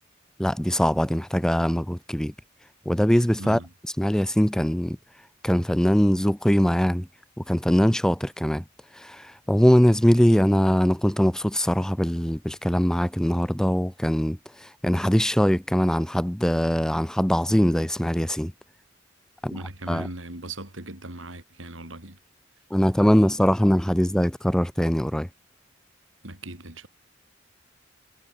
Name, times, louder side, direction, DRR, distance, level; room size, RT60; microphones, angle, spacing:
voice 1, 0.4-2.3 2.9-3.6 4.0-5.0 5.4-7.1 7.5-8.6 9.0-18.5 19.4-19.5 19.9-20.1 22.7-25.3, equal, 5° left, 0.5 m, -22 dB
voice 2, 3.4-3.7 19.5-22.2 26.2-26.9, right 2 dB, 80° right, 5.8 m, -38 dB
head